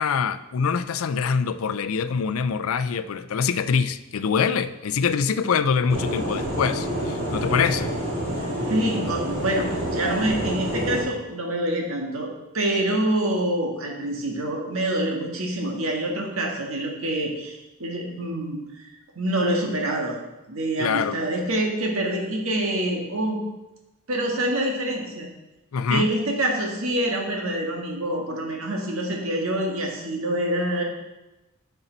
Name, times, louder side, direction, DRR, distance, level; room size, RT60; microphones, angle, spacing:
voice 1, 0.0-7.9 20.8-21.2 25.7-26.1, left 6 dB, 85° left, 13 dB, 0.4 m, -24 dB
sound 1, 5.9-11.0, equal, 30° right, 2.0 m, -28 dB
voice 2, 8.4-18.9 19.1-20.2 20.5-23.4 24.1-25.3 25.9-30.8, right 1 dB, 80° right, 1 dB, 1.6 m, -26 dB
10.0 x 5.5 x 3.9 m, 1.0 s
head